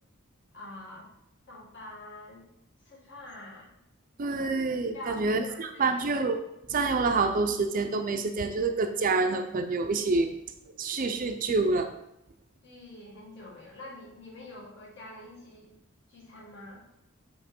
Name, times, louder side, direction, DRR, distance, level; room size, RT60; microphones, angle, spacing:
voice 1, 0.5-1.1 1.5-2.5 2.8-3.7 4.9-6.0 12.6-15.7 16.1-16.8, left 1 dB, 60° left, -4 dB, 2.0 m, -46 dB
voice 2, 4.2-6.4 6.7-10.3 10.8-11.9, right 3 dB, 40° right, 7 dB, 0.5 m, -27 dB
7.3 x 3.0 x 4.4 m, 0.84 s
head